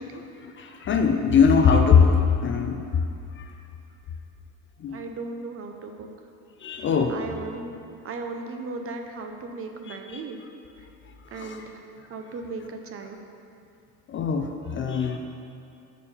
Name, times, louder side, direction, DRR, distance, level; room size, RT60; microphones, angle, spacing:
voice 1, 0.1-3.1 3.3-3.5 4.8-5.0 6.6-7.2 9.9-10.2 11.2-11.7 14.1-15.2, left 6 dB, 35° left, 5 dB, 0.4 m, -22 dB
voice 2, 4.9-6.1 7.1-7.8 8.0-10.4 10.8-10.9 11.3-11.8 12.1-13.2, right 3 dB, 40° right, 4 dB, 0.6 m, -36 dB
6.9 x 4.7 x 5.4 m, 2.6 s
cardioid pair, 130°, 36 cm